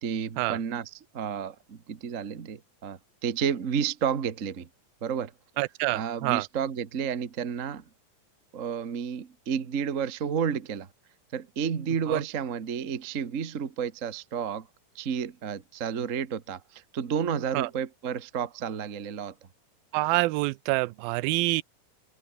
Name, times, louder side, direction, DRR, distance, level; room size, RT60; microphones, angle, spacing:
voice 1, 0.0-4.7 5.0-5.3 5.9-7.8 8.5-10.9 11.3-14.7 14.9-19.3, right 7 dB, 65° right, 0.7 m, -31 dB
voice 2, 5.6-6.4 12.1-12.2 17.5-17.7 19.9-21.6, right 21 dB, 90° right, 2.5 m, -26 dB
open air
omnidirectional pair, 4.1 m